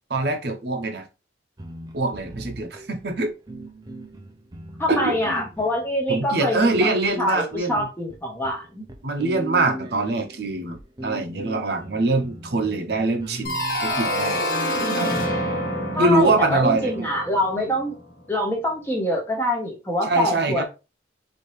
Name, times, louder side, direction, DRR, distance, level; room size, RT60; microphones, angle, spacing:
voice 1, 0.1-1.1 1.9-3.3 4.9-5.4 6.1-7.9 9.0-10.8 11.0-14.4 15.0-15.3 16.0-17.1 20.1-20.6, right 2 dB, 60° right, 4 dB, 0.8 m, -23 dB
sound 1, 1.6-16.7, right 1 dB, 20° right, 0.5 m, -39 dB
voice 2, 4.8-6.9 7.2-8.8 15.9-18.0 18.3-20.6, equal, 10° left, 1 dB, 1.0 m, -25 dB
sound 2, 13.4-18.1, equal, 50° left, 1.1 m, -27 dB
4.5 x 2.9 x 3.2 m, 0.29 s
head